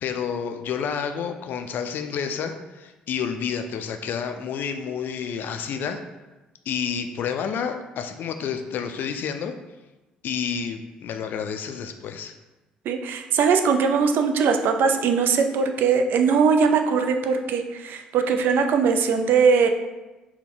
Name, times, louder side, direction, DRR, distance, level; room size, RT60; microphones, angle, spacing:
voice 1, 0.0-6.0 6.7-9.5 10.2-12.3, left 7 dB, 55° left, 7 dB, 0.3 m, -29 dB
voice 2, 12.9-19.7, right 5 dB, 60° right, 6 dB, 0.4 m, -20 dB
4.1 x 2.1 x 3.7 m, 1.1 s
hypercardioid pair, 50°, 4 cm